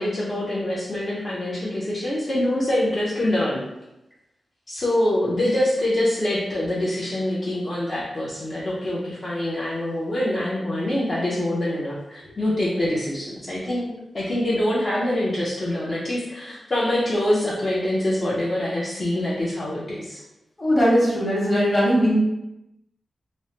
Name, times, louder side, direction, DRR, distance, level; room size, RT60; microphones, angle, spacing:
voice 1, 0.0-3.6 4.7-20.2, left 1 dB, 40° left, -8 dB, 0.5 m, -25 dB
voice 2, 20.6-22.1, equal, 20° left, -6 dB, 1.0 m, -19 dB
3.0 x 2.0 x 2.8 m, 0.91 s
wide cardioid pair, 110°, 0 cm